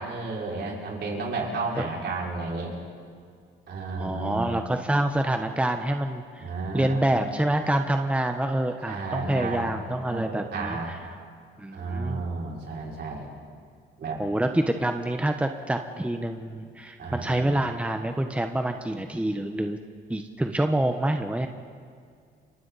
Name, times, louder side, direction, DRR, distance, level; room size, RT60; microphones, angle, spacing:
voice 1, 0.0-2.7 3.7-4.6 6.4-7.0 8.8-9.7 10.0-11.0 11.7-13.3 14.0-14.2 17.0-17.5, right 3 dB, 60° right, -3 dB, 6.0 m, -32 dB
voice 2, 4.0-6.5 6.7-11.0 11.6-12.2 14.2-19.8 20.1-21.5, right 1 dB, 5° right, 6 dB, 1.1 m, -27 dB
30.0 x 24.5 x 4.2 m, 2.2 s
cardioid pair, 90°, 20 cm